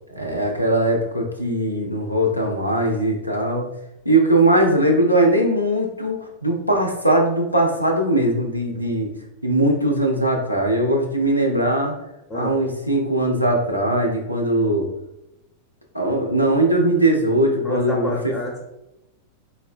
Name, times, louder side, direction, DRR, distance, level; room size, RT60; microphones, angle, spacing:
voice 1, 0.1-3.7 4.0-9.1 9.4-11.9 12.3-14.9 15.9-18.3, right 1 dB, 90° left, 1 dB, 0.5 m, -20 dB
voice 2, 17.6-18.6, left 1 dB, 15° left, -2 dB, 0.5 m, -28 dB
3.9 x 2.1 x 2.4 m, 0.91 s
figure-of-eight pair, 90°, 0 cm